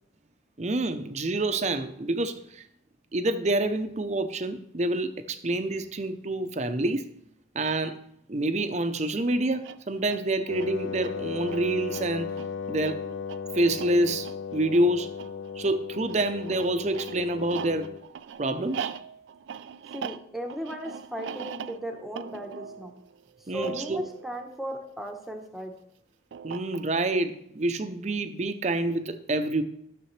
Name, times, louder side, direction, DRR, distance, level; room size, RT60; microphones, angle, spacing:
voice 1, 0.6-2.6 3.1-7.1 7.5-8.0 8.3-12.3 12.7-13.0 13.5-15.1 15.6-17.9 18.4-18.9 23.5-24.0 26.4-29.6, right 1 dB, 35° right, 9 dB, 0.6 m, -27 dB
sound 1, 9.5-25.3 26.3-27.2, right 7 dB, 80° right, 0.4 m, -42 dB
Wind instrument woodwind instrument, 10.5-18.1, left 6 dB, 80° left, 0.4 m, -36 dB
voice 2, 19.9-23.0 23.5-25.7, equal, ahead, 3 dB, 0.9 m, -36 dB
13.5 x 6.9 x 3.2 m, 0.73 s
head